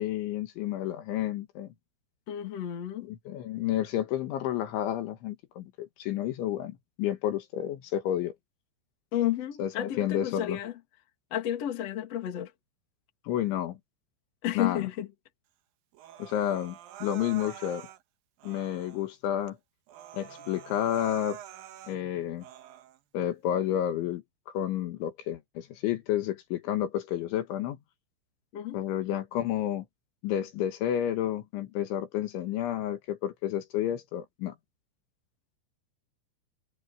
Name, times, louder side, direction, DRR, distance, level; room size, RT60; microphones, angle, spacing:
voice 1, 0.0-1.7 3.0-8.3 9.6-10.6 13.3-13.8 14.5-14.9 16.2-17.9 18.4-19.6 20.1-21.4 21.9-22.5 23.1-24.2 24.5-27.8 28.7-29.9 30.2-34.6, left 11 dB, 70° left, 3.8 m, -30 dB
voice 2, 2.3-3.1 9.1-10.7 11.3-12.5 14.4-15.1 28.5-28.8, left 12 dB, 40° left, 2.6 m, -31 dB
Human voice, 15.9-18.0 18.4-19.1 19.5-19.6 19.9-22.0 22.4-23.0, right 12 dB, 70° right, 2.3 m, -46 dB
omnidirectional pair, 5.7 m